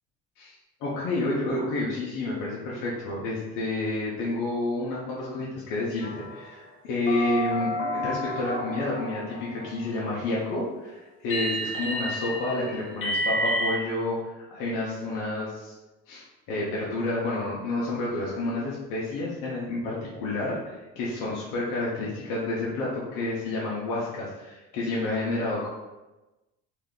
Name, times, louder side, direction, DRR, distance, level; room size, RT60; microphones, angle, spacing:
voice 1, 0.8-15.7 16.1-25.7, left 2 dB, 90° left, -5 dB, 0.8 m, -30 dB
sound 1, 6.0-6.6 7.1-10.2 11.3-13.7, equal, 40° left, 0.7 m, -30 dB
2.8 x 2.3 x 3.5 m, 1.1 s
cardioid pair, 115°, 32 cm